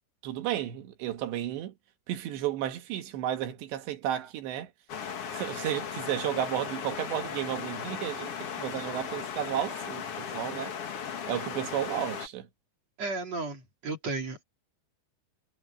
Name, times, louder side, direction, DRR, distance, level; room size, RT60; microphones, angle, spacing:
voice 1, 0.2-1.8 2.1-4.7 5.3-10.7 11.3-12.5, right 11 dB, 75° right, 3.8 m, -33 dB
sound 1, 4.9-12.3, left 7 dB, 50° left, 1.8 m, -37 dB
voice 2, 13.0-14.4, right 3 dB, 40° right, 3.4 m, -34 dB
omnidirectional pair, 5.2 m